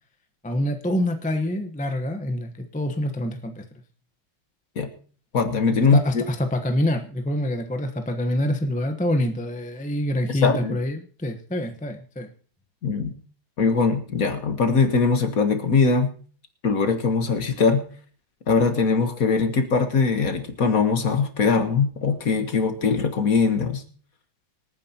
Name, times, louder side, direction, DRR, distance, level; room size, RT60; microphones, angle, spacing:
voice 1, 0.4-3.6 5.9-12.3, left 1 dB, 5° left, 5 dB, 0.6 m, -26 dB
voice 2, 5.3-6.2 10.3-10.8 12.8-13.1 13.6-16.1 16.6-17.8 18.5-23.8, left 4 dB, 50° left, 7 dB, 1.6 m, -21 dB
26.0 x 9.2 x 2.9 m, 0.43 s
omnidirectional pair, 2.2 m